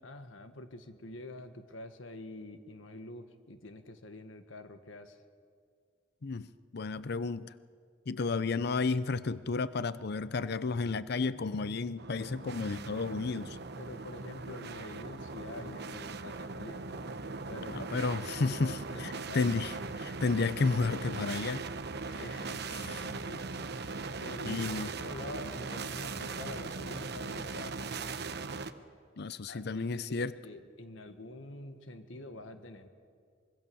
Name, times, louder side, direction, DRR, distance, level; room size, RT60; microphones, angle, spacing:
voice 1, 0.0-5.2 13.8-16.9 17.5-19.5 22.2-23.4 24.2-27.8 29.5-32.9, left 1 dB, 85° left, 8 dB, 1.6 m, -46 dB
voice 2, 6.7-7.5 8.1-13.6 17.7-19.7 20.0-21.6 22.1-22.2 22.8-23.0 24.4-24.9 29.2-30.3, left 4 dB, 55° left, 15 dB, 0.6 m, -32 dB
sound 1, 12.0-28.7, right 4 dB, 55° right, 1.0 m, -39 dB
25.0 x 24.0 x 7.1 m, 2.1 s
head